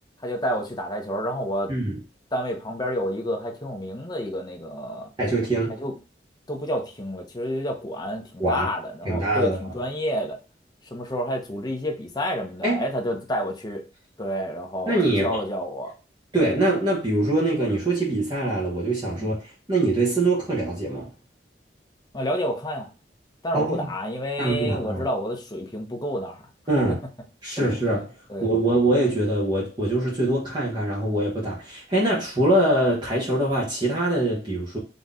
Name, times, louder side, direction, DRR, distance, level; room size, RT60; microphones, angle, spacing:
voice 1, 0.2-1.7 2.3-5.1 5.8-5.9 6.5-10.4 10.9-13.9 14.2-15.9 19.2-19.3 22.1-22.9 23.4-26.4 26.8-27.0 27.6-27.9 28.3-28.7, equal, 25° left, 0.9 m, -29 dB
voice 2, 1.7-2.0 5.2-5.8 8.4-8.7 9.0-9.6 12.6-12.8 14.9-15.4 16.3-21.1 23.5-23.9 24.4-25.0 26.7-27.0 27.4-28.1 28.4-34.8, right 1 dB, 25° right, 1.2 m, -23 dB
4.0 x 3.0 x 3.6 m
head